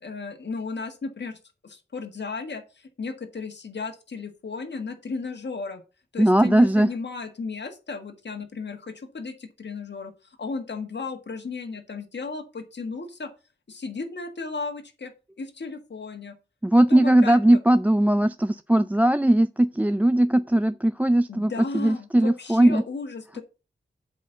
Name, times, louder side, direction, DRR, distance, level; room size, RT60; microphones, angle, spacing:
voice 1, 0.0-5.8 6.1-13.3 13.7-15.1 15.4-16.3 16.9-17.4 21.3-23.4, left 4 dB, 70° left, 1.6 m, -35 dB
voice 2, 6.2-6.9 16.6-22.8, right 1 dB, 10° right, 0.4 m, -19 dB
8.3 x 4.1 x 6.9 m
cardioid pair, 45°, 19 cm